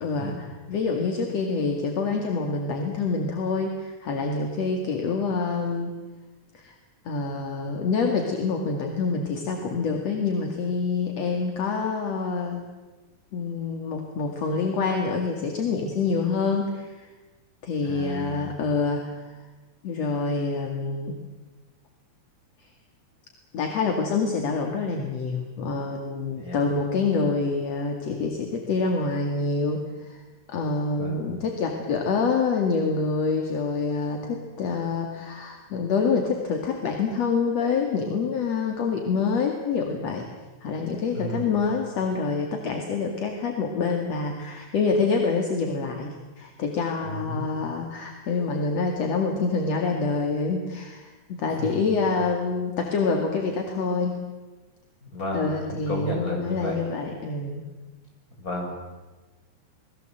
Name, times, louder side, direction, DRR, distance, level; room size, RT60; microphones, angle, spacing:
voice 1, 0.0-5.9 6.5-6.7 7.0-12.6 13.3-17.1 17.6-19.3 19.8-21.1 23.5-30.2 30.5-40.3 40.6-54.2 55.3-57.6, left 4 dB, 60° left, 2 dB, 3.2 m, -26 dB
voice 2, 17.8-18.5 26.4-26.6 30.9-31.2 41.1-41.6 47.0-47.4 51.6-51.9 55.1-56.8 58.4-58.7, left 1 dB, 25° left, -1 dB, 7.7 m, -32 dB
30.0 x 21.0 x 7.9 m, 1.2 s
omnidirectional pair, 3.4 m